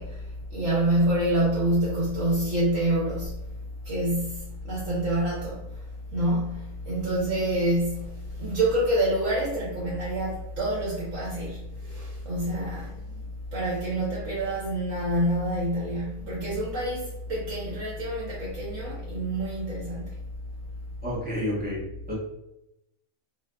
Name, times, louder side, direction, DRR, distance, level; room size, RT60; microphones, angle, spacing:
voice 1, 0.0-3.4 3.8-5.8 6.1-13.2 13.5-20.1, right 1 dB, 70° right, -5 dB, 1.1 m, -27 dB
voice 2, 21.0-21.8 22.1-22.2, left 1 dB, 10° right, -7 dB, 0.5 m, -29 dB
2.6 x 2.4 x 2.2 m, 0.87 s
omnidirectional pair, 1.4 m